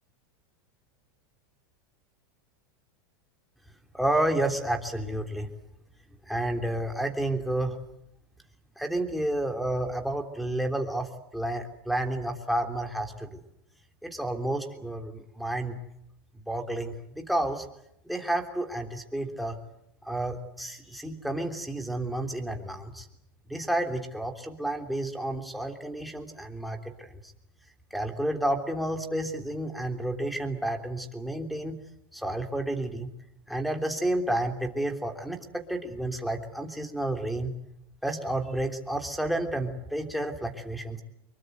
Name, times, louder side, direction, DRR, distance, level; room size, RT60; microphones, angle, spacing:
voice 1, 3.9-5.5 6.3-7.8 8.8-13.4 14.0-15.7 16.5-17.6 18.0-19.6 20.0-23.0 23.5-27.2 27.9-31.8 32.1-33.1 33.5-37.5 38.0-41.0, right 1 dB, ahead, 3 dB, 3.4 m, -30 dB
26.0 x 23.0 x 8.1 m, 0.81 s
supercardioid pair, 125°, 12 cm